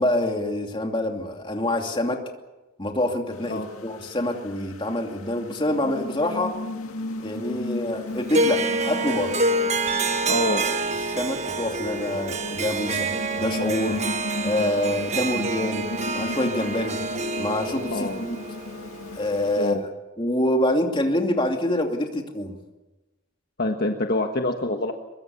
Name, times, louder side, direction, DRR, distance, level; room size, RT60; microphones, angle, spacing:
voice 1, 0.0-2.2 2.8-6.5 7.2-9.4 11.0-13.1 13.4-14.0 14.4-15.9 16.1-17.0 17.4-18.4 19.1-19.8 20.2-22.6, left 1 dB, 25° left, 3 dB, 2.7 m, -26 dB
sound 1, 3.3-19.7, left 2 dB, 90° left, 2.1 m, -35 dB
Harp, 8.3-19.6, right 2 dB, 30° right, 1.3 m, -27 dB
Piano, 9.9-13.9, right 2 dB, 90° right, 4.7 m, -40 dB
voice 2, 10.3-10.6 17.9-18.2 19.6-19.8 23.6-24.9, left 2 dB, 45° left, 4 dB, 1.4 m, -25 dB
24.0 x 22.5 x 7.1 m, 1.1 s
head